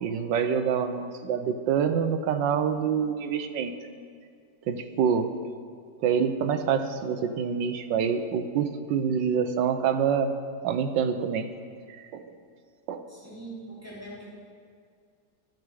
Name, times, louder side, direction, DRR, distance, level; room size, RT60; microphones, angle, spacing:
voice 1, 0.0-3.7 4.7-5.3 6.0-10.3 10.6-11.5 11.9-12.2 12.9-13.0, right 7 dB, 90° right, 9 dB, 1.4 m, -26 dB
voice 2, 13.1-14.3, right 2 dB, 10° right, -9 dB, 3.4 m, -42 dB
13.0 x 9.0 x 4.9 m, 2.2 s
omnidirectional pair, 1.9 m